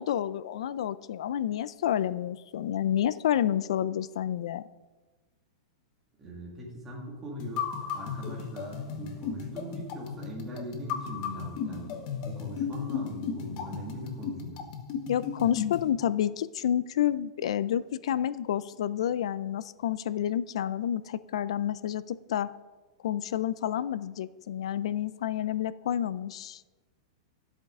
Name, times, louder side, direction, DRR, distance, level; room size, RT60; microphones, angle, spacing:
voice 1, 0.0-4.6 15.1-22.5 23.0-26.6, left 10 dB, 65° left, 17 dB, 0.4 m, -29 dB
voice 2, 6.2-7.6 7.9-14.6, right 1 dB, 10° right, -4 dB, 1.9 m, -41 dB
sound 1, 7.4-15.9, left 7 dB, 30° left, 0.9 m, -35 dB
13.0 x 8.0 x 3.7 m, 1.3 s
supercardioid pair, 170°, 3 cm